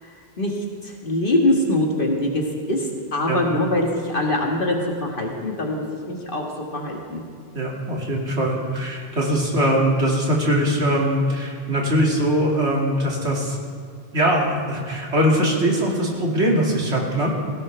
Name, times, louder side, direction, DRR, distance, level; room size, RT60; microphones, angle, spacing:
voice 1, 0.0-6.4 6.7-7.2, left 1 dB, 45° left, 0 dB, 1.9 m, -23 dB
voice 2, 7.5-13.6 14.1-17.3, equal, 70° right, -2 dB, 2.7 m, -21 dB
17.0 x 17.0 x 3.4 m, 2.2 s
omnidirectional pair, 1.2 m